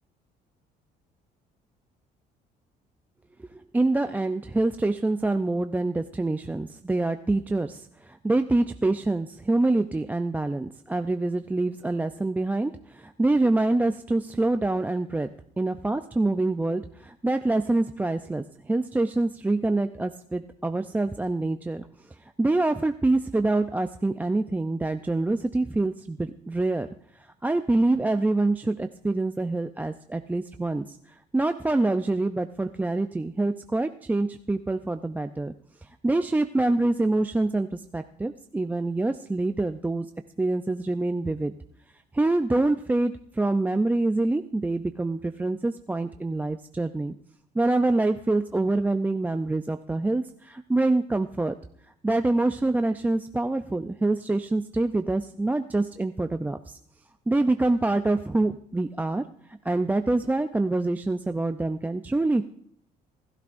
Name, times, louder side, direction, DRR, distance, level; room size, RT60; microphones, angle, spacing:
voice 1, 3.7-15.3 15.6-21.8 22.4-26.9 27.2-35.5 35.8-40.1 40.4-41.5 42.1-47.1 47.5-51.5 52.0-56.8 57.3-59.2 59.6-62.4, right 2 dB, 10° right, 7 dB, 0.5 m, -26 dB
26.5 x 13.0 x 2.6 m, 0.66 s
cardioid pair, 110°, 17 cm